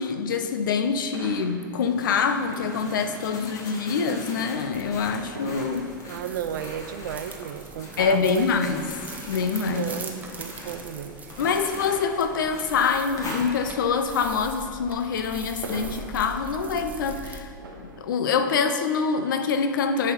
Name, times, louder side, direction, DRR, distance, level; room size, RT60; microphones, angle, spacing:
voice 1, 0.0-5.9 8.0-8.8 9.3-9.8 11.4-17.5 18.0-20.1, left 5 dB, 70° left, 9 dB, 0.6 m, -25 dB
sound 1, 0.7-18.3, right 1 dB, 80° right, 1.1 m, -46 dB
sound 2, 1.8-14.2, left 1 dB, 30° left, 1.6 m, -42 dB
sound 3, 4.7-17.4, right 3 dB, 15° right, 0.9 m, -42 dB
voice 2, 6.1-8.5 9.7-11.2, right 9 dB, 65° right, 10 dB, 0.5 m, -33 dB
9.9 x 4.9 x 4.4 m, 2.1 s
hypercardioid pair, 100°, 11 cm